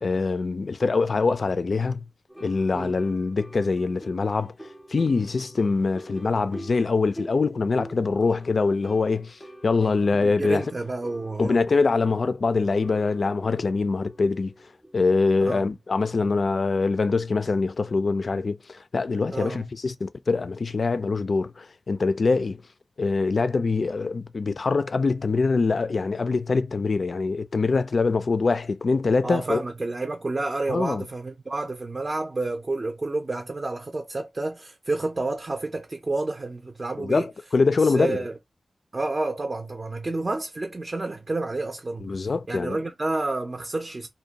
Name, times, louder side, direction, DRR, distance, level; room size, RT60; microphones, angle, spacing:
voice 1, 0.0-2.0 2.4-4.5 4.9-10.6 11.4-14.5 14.9-22.6 23.0-29.6 30.7-31.0 37.0-38.2 42.0-42.8, left 4 dB, 60° left, 0.3 m, -24 dB
sound 1, 2.3-15.2, right 1 dB, 5° left, 0.6 m, -46 dB
voice 2, 10.1-11.6 15.4-15.7 19.3-19.7 29.2-37.3 37.8-38.3 38.9-42.1 42.5-44.1, right 2 dB, 40° right, 0.5 m, -30 dB
2.6 x 2.1 x 2.8 m
wide cardioid pair, 75°, 0 cm